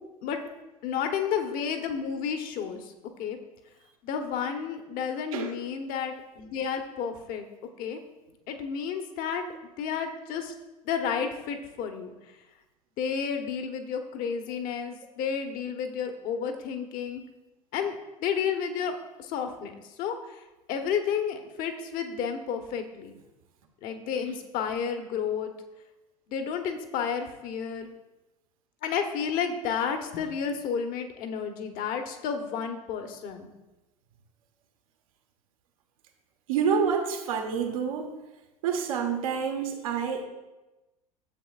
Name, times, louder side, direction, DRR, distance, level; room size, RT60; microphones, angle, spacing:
voice 1, 0.8-2.8 3.2-3.4 4.0-7.5 7.8-8.0 8.5-9.4 9.8-10.5 10.8-12.1 13.0-17.2 17.7-18.0 18.2-19.7 20.0-20.1 20.7-23.1 23.8-25.5 26.3-27.9 28.8-33.5, left 7 dB, 50° left, 6 dB, 1.1 m, -31 dB
voice 2, 36.5-38.1 38.6-40.2, right 6 dB, 65° right, 4 dB, 1.3 m, -28 dB
12.0 x 7.8 x 2.5 m, 1.0 s
figure-of-eight pair, 75°, 19 cm